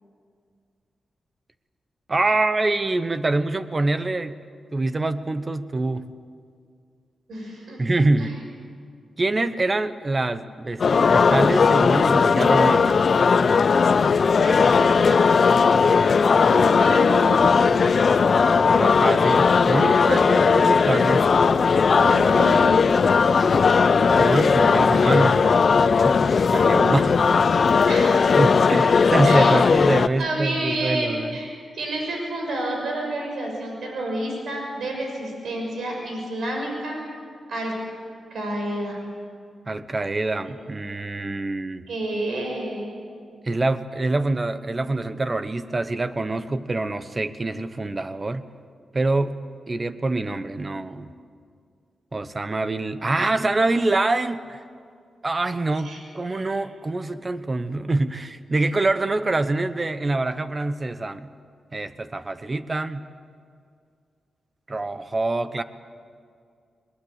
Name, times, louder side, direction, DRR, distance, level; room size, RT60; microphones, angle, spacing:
voice 1, 2.1-4.3 4.7-6.0 7.8-8.4 9.2-13.0 14.4-15.6 18.6-21.3 24.1-25.5 26.0-27.4 28.3-31.4 39.7-41.8 43.4-48.4 48.9-49.4 49.7-51.1 52.1-54.6 55.2-61.3 61.7-63.0 64.7-65.6, right 2 dB, 30° right, 12 dB, 1.1 m, -25 dB
voice 2, 7.3-7.8 8.2-8.3 16.4-17.5 21.9-22.7 24.4-24.9 27.9-28.6 29.2-29.6 30.2-37.0 37.5-37.8 38.3-39.0 41.9-42.9 55.8-56.0 56.3-56.6, right 1 dB, 75° right, 1 dB, 6.2 m, -29 dB
sound 1, 10.8-30.1, left 5 dB, 55° left, 0.6 m, -18 dB
21.0 x 21.0 x 8.2 m, 2.2 s
cardioid pair, 85°, 0 cm